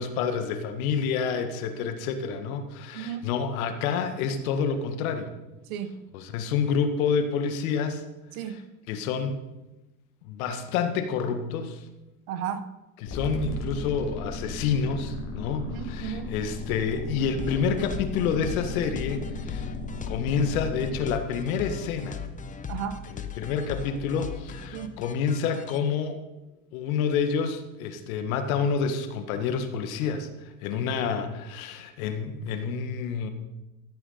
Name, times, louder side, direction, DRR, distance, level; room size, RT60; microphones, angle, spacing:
voice 1, 0.0-5.3 6.1-8.0 8.4-8.6 8.9-9.4 10.2-11.8 13.0-19.7 20.1-22.2 23.1-26.2 26.7-33.3, left 6 dB, 75° left, 1.8 m, -28 dB
voice 2, 5.7-6.0 8.4-8.6 12.3-12.7 15.6-16.3 22.7-23.0 24.7-25.0, right 9 dB, 75° right, 1.3 m, -34 dB
sound 1, 13.1-21.1, left 3 dB, 40° left, 3.9 m, -36 dB
sound 2, 17.4-25.8, left 6 dB, 20° left, 0.9 m, -38 dB
14.0 x 8.2 x 5.8 m
supercardioid pair, 105°, 42 cm